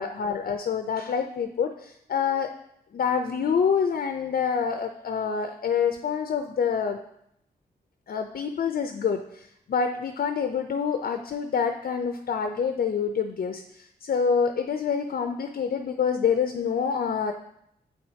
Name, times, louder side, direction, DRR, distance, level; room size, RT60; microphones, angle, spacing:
voice 1, 0.0-2.5 2.9-7.0 8.1-17.3, left 6 dB, 60° left, 6 dB, 0.5 m, -27 dB
8.3 x 4.4 x 2.8 m, 0.77 s
cardioid pair, 50°, 17 cm